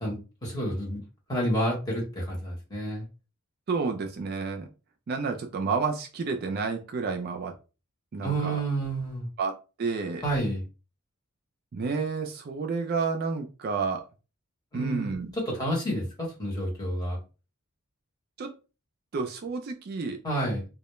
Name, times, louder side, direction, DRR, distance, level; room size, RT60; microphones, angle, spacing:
voice 1, 0.0-1.0 1.3-3.0 8.2-9.3 10.2-10.6 14.7-15.1 15.5-17.2 20.2-20.6, right 1 dB, 20° left, -3 dB, 0.9 m, -29 dB
voice 2, 3.7-4.7 5.1-7.5 8.1-8.6 9.4-10.3 11.7-14.0 14.7-15.3 18.4-18.5 19.1-20.2, right 4 dB, 45° right, 4 dB, 0.3 m, -30 dB
2.2 x 2.0 x 3.0 m, 0.31 s
head